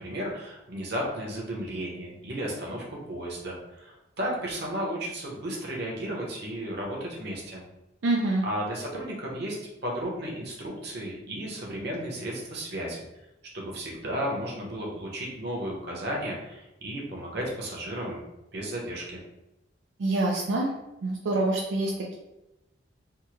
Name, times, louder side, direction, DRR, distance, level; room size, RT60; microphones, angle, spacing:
voice 1, 0.0-7.6 8.4-9.6 9.8-13.0 13.5-18.2 18.5-19.2, equal, 60° right, -2 dB, 0.9 m, -34 dB
voice 2, 8.0-8.4 20.0-20.7 21.0-22.1, right 2 dB, 85° right, -2 dB, 0.5 m, -26 dB
3.5 x 2.1 x 3.0 m, 0.92 s
head